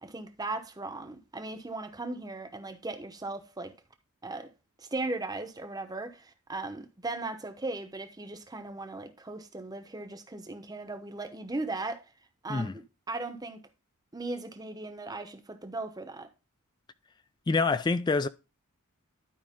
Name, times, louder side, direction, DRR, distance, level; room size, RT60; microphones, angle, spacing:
voice 1, 0.0-3.7 4.2-4.5 4.8-12.0 12.4-12.7 13.1-13.6 14.1-16.3, right 2 dB, 15° right, 0.8 m, -37 dB
voice 2, 17.5-18.3, left 4 dB, 20° left, 0.3 m, -26 dB
11.5 x 4.8 x 3.5 m
head